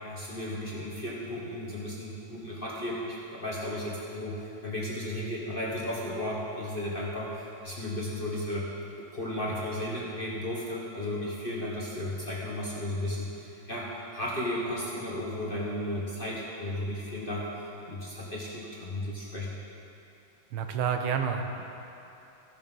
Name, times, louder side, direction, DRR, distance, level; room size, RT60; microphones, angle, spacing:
voice 1, 0.1-8.7 9.1-13.9 14.1-19.5, left 1 dB, 30° left, -5 dB, 1.1 m, -34 dB
voice 2, 20.5-21.7, right 7 dB, 75° right, 5 dB, 1.5 m, -29 dB
15.0 x 6.6 x 5.4 m, 2.9 s
omnidirectional pair, 2.4 m